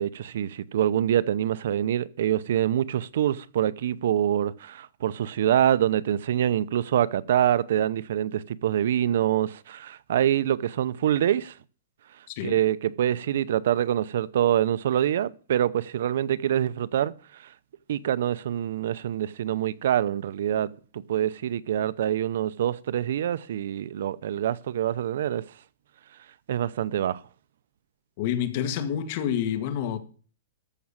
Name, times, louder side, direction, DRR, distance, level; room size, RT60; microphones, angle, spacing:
voice 1, 0.0-11.5 12.4-17.1 17.9-25.4 26.5-27.2, right 11 dB, 65° right, 0.7 m, -25 dB
voice 2, 28.2-30.0, left 9 dB, 45° left, 1.9 m, -28 dB
14.0 x 6.1 x 7.3 m
hypercardioid pair, 160°, 0 cm